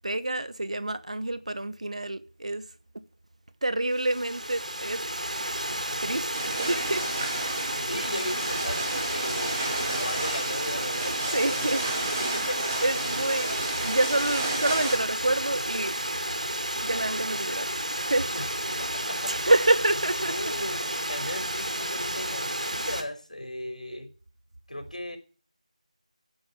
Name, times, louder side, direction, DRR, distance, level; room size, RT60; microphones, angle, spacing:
voice 1, 0.0-2.7 3.6-5.1 6.0-7.5 10.9-11.8 12.8-16.0 16.8-18.3 19.3-20.9, right 2 dB, 60° right, 1.2 m, -28 dB
Water, 3.9-23.0, right 1 dB, 80° right, 5.5 m, -31 dB
sound 1, 6.3-15.0, right 2 dB, 20° right, 2.6 m, -33 dB
voice 2, 7.8-11.7 12.3-12.7 18.3-18.5 19.1-19.3 20.3-20.8 21.1-24.1 24.7-25.2, left 1 dB, 80° left, 5.1 m, -36 dB
11.5 x 9.4 x 8.7 m
figure-of-eight pair, 170°, 4 cm